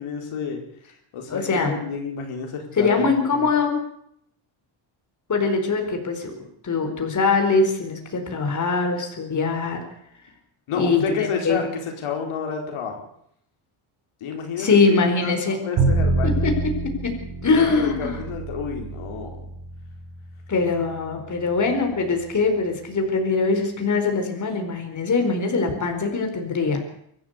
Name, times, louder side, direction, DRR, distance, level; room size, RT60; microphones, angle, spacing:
voice 1, 0.0-3.5 10.7-13.0 14.2-16.5 17.5-19.3, left 6 dB, 75° left, 2 dB, 4.7 m, -30 dB
voice 2, 1.3-1.8 2.8-3.8 5.3-6.3 6.6-9.8 10.7-11.7 14.6-15.6 16.2-16.5 16.8-17.1 17.4-18.2 20.5-26.8, left 4 dB, 35° left, 4 dB, 4.5 m, -22 dB
Bowed string instrument, 15.8-21.9, right 3 dB, 75° right, 7.3 m, -27 dB
24.0 x 13.5 x 8.2 m, 0.72 s
cardioid pair, 120°, 50 cm